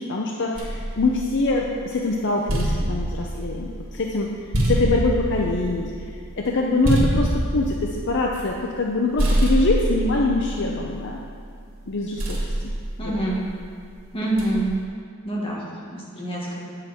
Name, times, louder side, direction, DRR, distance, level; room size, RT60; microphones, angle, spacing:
voice 1, 0.0-4.3 4.6-5.9 6.4-11.2 11.9-12.5 13.0-13.2, left 2 dB, 55° left, 0 dB, 0.6 m, -24 dB
sound 1, 0.6-1.8 2.2-8.9 9.2-11.4 12.2-13.7 14.4-14.8, right 1 dB, 65° right, 2.0 m, -26 dB
voice 2, 13.0-13.4 14.1-14.7 15.2-16.6, right 1 dB, 25° left, -5 dB, 1.6 m, -26 dB
8.9 x 6.5 x 4.2 m, 2.3 s
head